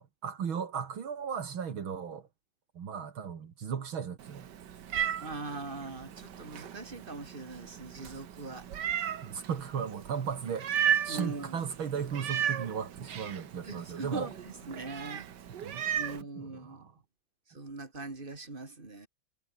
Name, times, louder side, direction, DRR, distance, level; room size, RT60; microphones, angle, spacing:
voice 1, 0.0-2.2 2.8-4.5 5.0-5.1 9.2-10.7 11.0-14.3 15.6-15.8 16.4-16.9, right 7 dB, 75° right, 2.7 m, -36 dB
Meow, 4.2-16.2, right 9 dB, 60° right, 1.8 m, -35 dB
voice 2, 5.2-8.9 11.1-11.6 13.6-15.3 16.0-16.9 17.5-19.1, right 3 dB, 25° right, 3.5 m, -41 dB
omnidirectional pair, 2.3 m